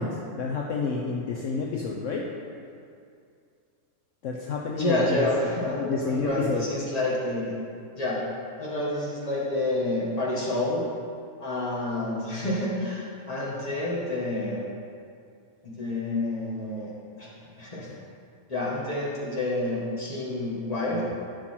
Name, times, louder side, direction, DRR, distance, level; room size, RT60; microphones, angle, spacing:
voice 1, 0.0-2.2 4.2-5.3 5.8-6.7, left 4 dB, 65° left, -1 dB, 1.0 m, -29 dB
voice 2, 4.8-7.6 8.0-8.2 8.6-10.8 11.4-14.6 15.6-16.9 17.2-17.9 18.5-21.0, left 1 dB, 25° left, -6 dB, 1.6 m, -28 dB
9.8 x 5.7 x 4.3 m, 2.4 s
omnidirectional pair, 1.5 m